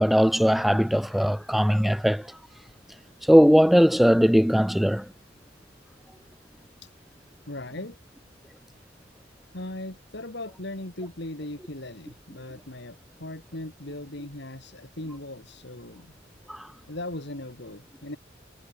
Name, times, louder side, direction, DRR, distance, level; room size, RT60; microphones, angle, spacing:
voice 1, 0.0-2.3 3.2-5.1 16.5-16.7, equal, ahead, 0.8 m, -19 dB
voice 2, 7.5-8.0 9.5-16.1 16.9-18.2, left 1 dB, 65° left, 3.5 m, -38 dB
head